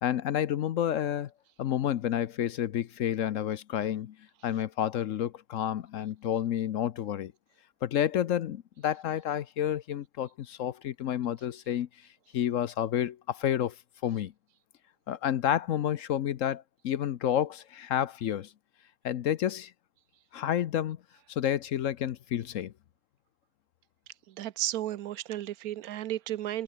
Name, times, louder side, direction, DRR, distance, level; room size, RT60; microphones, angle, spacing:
voice 1, 0.0-1.3 1.6-4.2 4.4-7.3 7.8-11.9 12.3-13.8 14.0-14.3 15.1-18.5 19.0-19.7 20.3-21.0 21.3-22.7, left 10 dB, 65° left, 1.0 m, -30 dB
voice 2, 24.3-26.6, right 13 dB, 75° right, 1.1 m, -33 dB
omnidirectional pair, 1.6 m